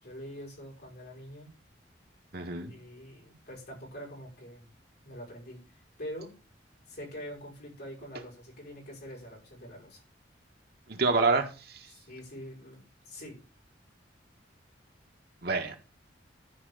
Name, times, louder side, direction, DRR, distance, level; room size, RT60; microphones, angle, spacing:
voice 1, 0.0-1.5 2.7-4.7 5.0-6.3 6.9-10.0 11.9-13.4, equal, 60° left, -3 dB, 6.0 m, -45 dB
voice 2, 2.3-2.7 10.9-11.9 15.4-15.8, right 3 dB, 55° right, 4 dB, 1.7 m, -27 dB
13.0 x 5.2 x 5.1 m, 0.32 s
head